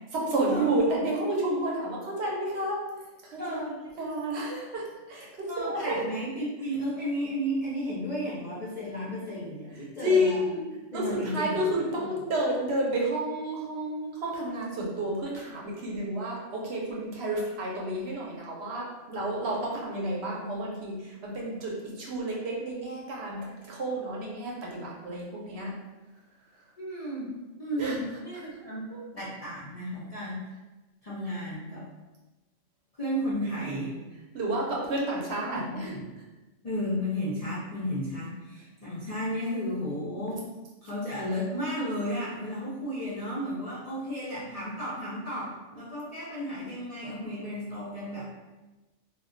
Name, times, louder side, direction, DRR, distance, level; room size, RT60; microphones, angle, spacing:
voice 1, 0.1-2.8 3.2-3.7 4.0-6.0 10.0-10.6 10.9-25.7 27.8-28.0 28.9-29.0 34.3-35.9, right 1 dB, 65° right, -3 dB, 0.8 m, -30 dB
voice 2, 3.4-3.7 5.5-10.5 10.9-11.9 26.8-27.3 27.6-28.9 29.1-30.4 31.0-31.8 33.0-33.9 35.3-36.0 36.6-40.4 40.8-48.3, equal, 50° left, -8 dB, 0.4 m, -33 dB
2.3 x 2.2 x 3.7 m, 1.1 s
omnidirectional pair, 1.3 m